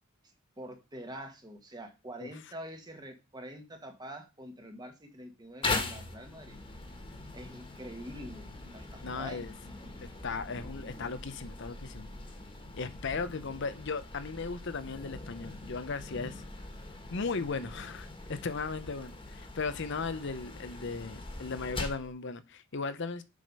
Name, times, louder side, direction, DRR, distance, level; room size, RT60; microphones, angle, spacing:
voice 1, 0.6-6.6 6.9-7.0 7.3-9.5, right 1 dB, 20° right, 1.4 m, -45 dB
sound 1, 5.6-22.1, left 2 dB, 25° left, 1.7 m, -41 dB
voice 2, 9.0-9.5 10.0-12.1 12.7-16.4 17.1-23.2, left 4 dB, 60° left, 0.7 m, -37 dB
7.5 x 4.9 x 5.4 m
head